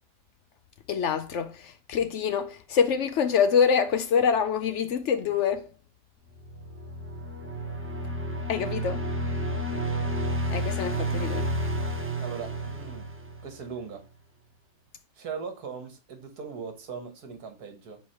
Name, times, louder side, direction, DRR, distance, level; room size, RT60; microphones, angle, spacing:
voice 1, 0.9-5.7 8.5-9.0 10.5-11.5, left 7 dB, 70° left, 0.7 m, -25 dB
sound 1, 6.4-13.7, equal, 20° right, 0.3 m, -31 dB
voice 2, 12.2-13.1 13.4-14.0 15.1-18.0, right 6 dB, 65° right, 1.8 m, -39 dB
4.8 x 4.5 x 5.6 m
omnidirectional pair, 1.8 m